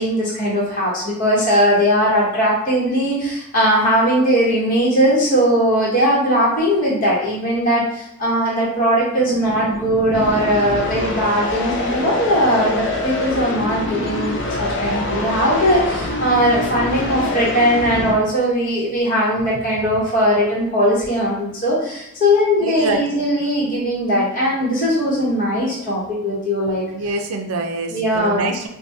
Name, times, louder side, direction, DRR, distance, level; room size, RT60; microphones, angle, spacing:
voice 1, 0.0-26.8 27.9-28.5, equal, 35° left, -6 dB, 1.0 m, -19 dB
sound 1, 9.1-18.1, left 2 dB, 55° left, 0.5 m, -25 dB
voice 2, 22.6-23.2 26.9-28.7, right 2 dB, 80° right, 4 dB, 0.5 m, -25 dB
4.6 x 2.2 x 2.6 m, 0.79 s
head